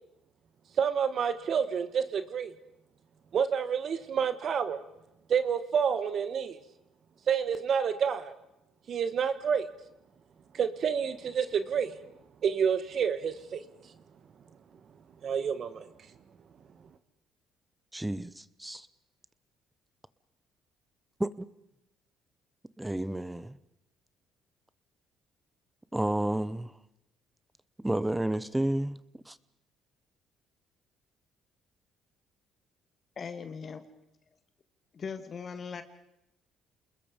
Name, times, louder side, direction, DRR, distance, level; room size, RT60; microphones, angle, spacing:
voice 1, 0.8-2.5 3.3-4.8 5.3-6.6 7.3-8.3 8.9-9.7 10.5-12.0 12.4-13.6 15.2-15.9, right 7 dB, 55° right, 1.4 m, -28 dB
voice 2, 17.9-18.9 21.2-21.5 22.8-23.6 25.9-26.7 27.8-29.0 29.3-29.4, right 1 dB, 10° right, 0.9 m, -31 dB
voice 3, 33.1-33.8 34.9-35.8, left 6 dB, 45° left, 1.7 m, -39 dB
28.5 x 21.0 x 5.2 m
cardioid pair, 90°, 0 cm